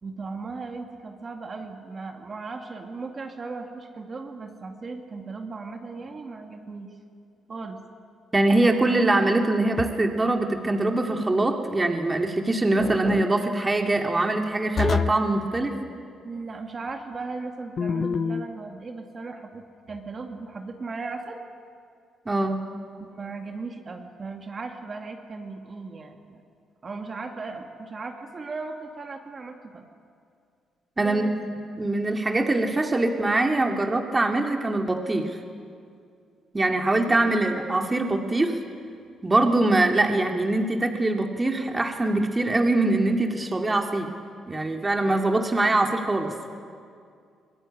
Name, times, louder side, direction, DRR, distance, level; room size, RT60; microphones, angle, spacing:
voice 1, 0.0-6.9 7.5-7.8 16.2-21.4 23.0-26.4 26.8-29.9 31.0-31.3 37.0-37.2 37.4-37.6, right 4 dB, 40° right, 3 dB, 2.3 m, -37 dB
voice 2, 8.3-15.8 22.3-22.6 31.0-31.3 31.8-35.4 36.5-38.6 39.2-44.1 44.5-46.5, right 2 dB, 20° right, 3 dB, 2.4 m, -23 dB
sound 1, 9.8-10.3 12.8-13.3 14.8-15.3 17.8-18.5, left 6 dB, 50° left, 0.8 m, -27 dB
23.5 x 19.5 x 10.0 m, 2.3 s
cardioid pair, 90°, 0 cm